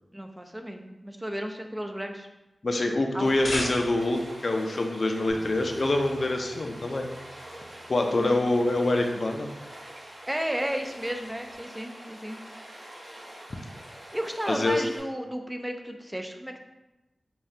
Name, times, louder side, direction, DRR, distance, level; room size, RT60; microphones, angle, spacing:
voice 1, 0.1-2.3 3.1-3.3 8.1-8.4 10.3-12.4 14.1-16.6, equal, 10° right, 4 dB, 0.4 m, -33 dB
voice 2, 2.6-7.1 7.9-9.5 14.5-14.8, left 2 dB, 55° left, 3 dB, 0.4 m, -25 dB
sound 1, 3.1-4.3, left 1 dB, 85° left, 0.7 m, -33 dB
Stream, 3.2-15.0, right 1 dB, 60° right, 1.0 m, -45 dB
Bass guitar, 5.3-11.5, equal, 80° right, 1.1 m, -54 dB
5.3 x 2.3 x 2.7 m, 1.0 s
wide cardioid pair, 65°, 0 cm